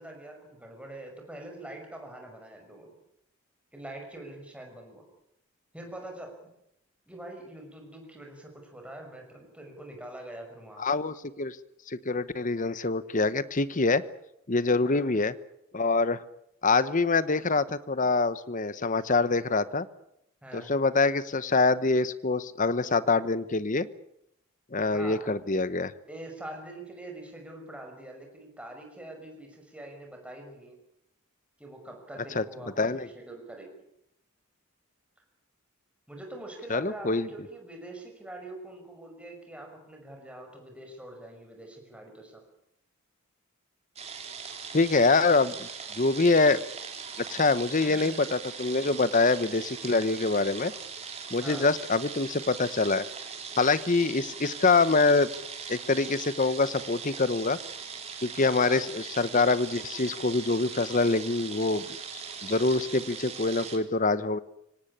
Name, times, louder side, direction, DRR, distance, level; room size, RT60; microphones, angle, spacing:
voice 1, 0.0-2.9 3.7-5.0 5.7-6.5 7.1-10.9 14.8-15.2 20.4-20.7 24.9-25.3 26.1-30.8 31.6-33.7 36.1-42.4 47.8-48.3 51.4-51.7 58.5-58.8, right 1 dB, 5° right, 2 dB, 5.8 m, -44 dB
voice 2, 10.8-11.6 11.9-14.0 14.5-15.3 15.7-16.2 16.6-19.9 20.5-23.9 24.7-25.9 32.3-32.4 32.8-33.1 36.7-37.3 44.7-45.7 46.0-46.6 47.3-50.7 51.3-53.0 53.6-55.3 55.7-57.6 58.2-61.9 62.1-64.4, left 3 dB, 35° left, 15 dB, 1.0 m, -25 dB
sound 1, 44.0-63.8, right 6 dB, 30° right, 3.4 m, -40 dB
24.5 x 18.0 x 8.7 m, 0.79 s
head